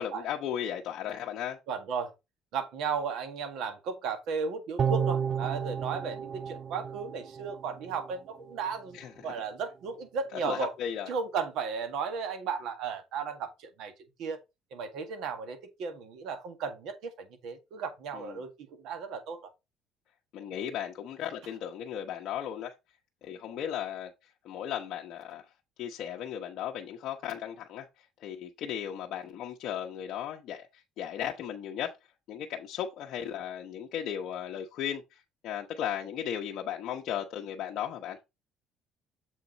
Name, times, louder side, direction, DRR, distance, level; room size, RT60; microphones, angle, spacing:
voice 1, 0.0-1.6 8.9-9.3 10.3-11.1 18.1-18.4 20.3-22.7 23.2-24.1 24.4-25.5 25.8-27.9 28.2-31.9 32.3-38.2, left 9 dB, 60° left, 0.9 m, -36 dB
voice 2, 1.7-2.1 2.5-10.7 11.1-13.9 14.2-14.4 14.7-19.4, right 5 dB, 70° right, 1.8 m, -35 dB
sound 1, 4.8-8.1 8.5-8.6, right 7 dB, 40° right, 0.3 m, -32 dB
7.1 x 4.4 x 4.0 m
cardioid pair, 140°, 0 cm